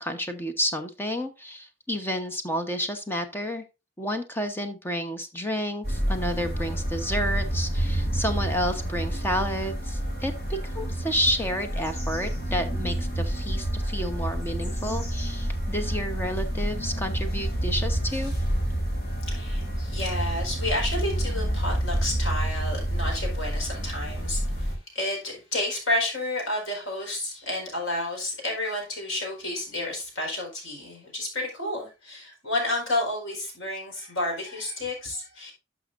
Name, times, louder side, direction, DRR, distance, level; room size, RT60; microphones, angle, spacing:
voice 1, 0.0-3.6 4.0-18.3, equal, 10° left, 1.0 m, -30 dB
sound 1, 5.8-24.7, right 1 dB, 55° left, 3.6 m, -28 dB
voice 2, 19.3-35.5, left 1 dB, 85° left, 4.9 m, -31 dB
11.5 x 6.3 x 2.6 m
head